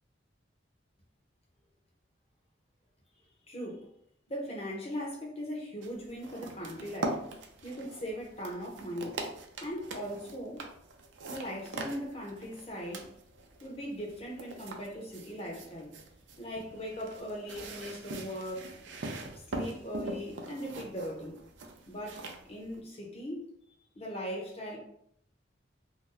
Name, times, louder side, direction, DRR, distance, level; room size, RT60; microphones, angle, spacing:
voice 1, 3.5-3.8 4.3-7.2 7.6-9.2 9.6-10.7 11.3-13.1 13.6-15.9 16.4-18.7 19.5-21.4 21.9-23.5 23.9-24.8, equal, 30° left, 0.8 m, -39 dB
sound 1, 5.8-22.8, right 2 dB, 75° right, 0.5 m, -42 dB
2.6 x 2.2 x 3.8 m
head